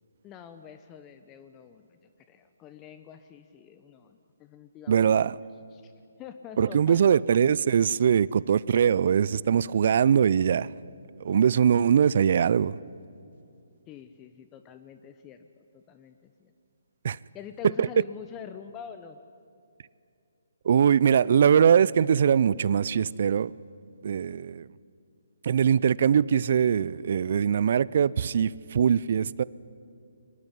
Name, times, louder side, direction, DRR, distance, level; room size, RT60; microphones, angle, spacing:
voice 1, 0.2-2.0 2.3-5.1 5.7-5.9 6.2-7.1 13.9-16.5 17.3-19.2, left 8 dB, 20° left, 9 dB, 0.9 m, -45 dB
voice 2, 4.9-5.4 6.6-10.7 11.2-12.7 17.0-17.2 17.8-17.9 20.6-23.5 24.0-24.6 25.4-29.4, right 8 dB, 50° right, 22 dB, 0.5 m, -22 dB
23.5 x 21.0 x 10.0 m, 2.5 s
figure-of-eight pair, 140°, 0 cm